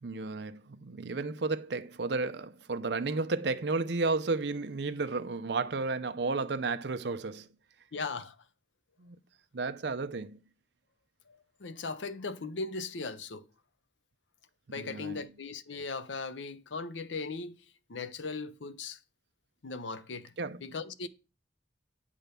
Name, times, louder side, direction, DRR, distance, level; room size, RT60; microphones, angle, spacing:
voice 1, 0.0-7.5 9.0-9.2 9.5-10.4 14.8-15.3 20.4-20.6, right 3 dB, 70° right, 0.6 m, -33 dB
voice 2, 7.9-8.3 11.3-13.5 14.7-17.6 17.9-19.0 19.6-20.3 20.6-21.1, left 4 dB, 90° left, 0.7 m, -38 dB
9.1 x 3.7 x 6.8 m
head